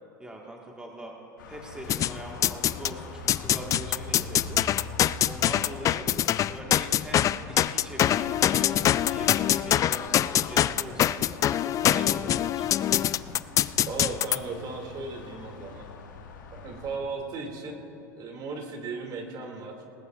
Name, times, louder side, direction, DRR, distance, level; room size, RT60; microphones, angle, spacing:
voice 1, 0.2-1.2 1.4-4.7 5.0-6.1 6.5-11.2 11.6-12.7, right 1 dB, 10° right, -1 dB, 1.5 m, -42 dB
sound 1, 1.4-17.0, left 3 dB, 85° left, 1.6 m, -43 dB
sound 2, 1.9-2.9 3.3-14.4, left 11 dB, 30° left, 0.3 m, -24 dB
voice 2, 13.8-15.9 16.5-17.8 18.1-19.7, right 4 dB, 40° right, 2 dB, 2.2 m, -36 dB
19.5 x 19.5 x 2.4 m, 2.8 s
hypercardioid pair, 95°, 10 cm